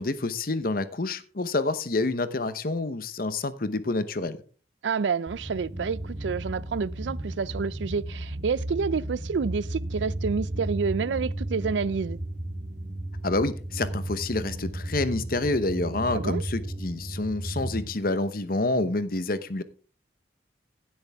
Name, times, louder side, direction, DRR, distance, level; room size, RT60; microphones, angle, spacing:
voice 1, 0.0-4.4 13.2-19.6, left 2 dB, 50° left, 0.9 m, -28 dB
voice 2, 4.8-12.2 16.1-16.4, right 5 dB, 85° right, 0.4 m, -29 dB
sound 1, 5.3-17.9, right 1 dB, 45° right, 1.8 m, -34 dB
15.5 x 7.9 x 3.5 m
head